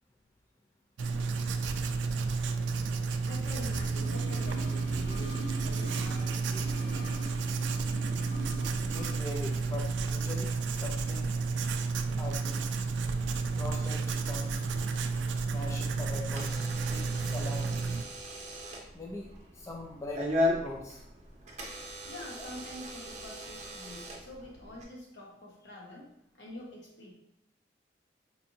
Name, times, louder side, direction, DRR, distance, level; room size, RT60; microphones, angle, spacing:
Writing, 1.0-18.0, right 4 dB, 80° right, 0.3 m, -31 dB
voice 1, 3.3-7.4 22.0-26.1 26.3-27.1, left 1 dB, 70° left, -3 dB, 1.1 m, -46 dB
sound 1, 3.8-9.3 9.5-9.6, right 1 dB, 90° left, 0.6 m, -43 dB
voice 2, 8.9-11.8 12.2-12.6 13.5-14.7 15.5-17.7 18.9-20.3 20.6-21.0, left 2 dB, 15° left, -1 dB, 0.4 m, -42 dB
Door / Alarm, 15.6-24.8, left 1 dB, 40° right, 0.7 m, -37 dB
4.4 x 2.7 x 2.6 m, 0.77 s
head